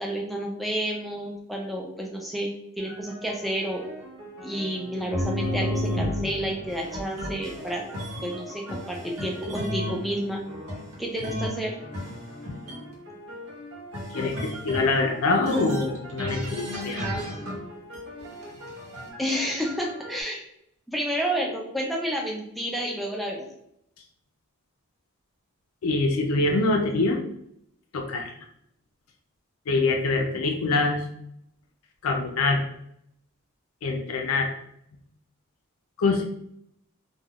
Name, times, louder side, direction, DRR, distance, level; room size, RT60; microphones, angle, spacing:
voice 1, 0.0-3.8 4.4-7.9 8.2-10.4 11.0-11.8 19.2-20.4 20.9-23.5 30.3-30.8, equal, ahead, -1 dB, 0.3 m, -30 dB
sound 1, 2.8-5.7 5.9-11.3 11.5-20.2, equal, 55° right, 0.7 m, -43 dB
sound 2, 5.1-8.4 8.7-10.0 10.7-11.6 11.9-12.8 13.9-14.9 15.4-17.6 17.9-19.1, left 1 dB, 90° right, 0.9 m, -32 dB
voice 2, 14.1-17.1 25.8-27.2 27.9-28.3 29.7-31.0 32.0-32.6 33.8-34.5 36.0-36.2, left 3 dB, 75° left, 3 dB, 0.4 m, -24 dB
2.3 x 2.2 x 3.4 m, 0.73 s
head